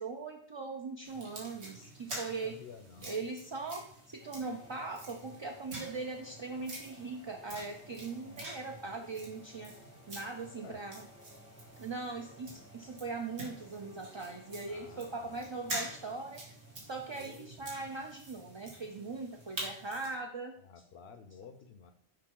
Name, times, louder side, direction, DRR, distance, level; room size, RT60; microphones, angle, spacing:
voice 1, 0.0-2.6 3.0-9.7 10.1-11.0 11.8-16.4 16.8-20.5, right 3 dB, 35° right, 1 dB, 0.5 m, -40 dB
sound 1, 1.0-20.2, right 1 dB, 85° right, 1.9 m, -47 dB
voice 2, 2.4-3.2 8.0-8.7 10.5-10.8 14.7-15.4 17.2-17.5 20.6-21.9, left 6 dB, 70° left, 10 dB, 0.9 m, -53 dB
sound 2, 4.2-18.0, left 1 dB, 15° left, 0.7 m, -58 dB
6.7 x 5.2 x 3.8 m, 0.63 s
omnidirectional pair, 1.1 m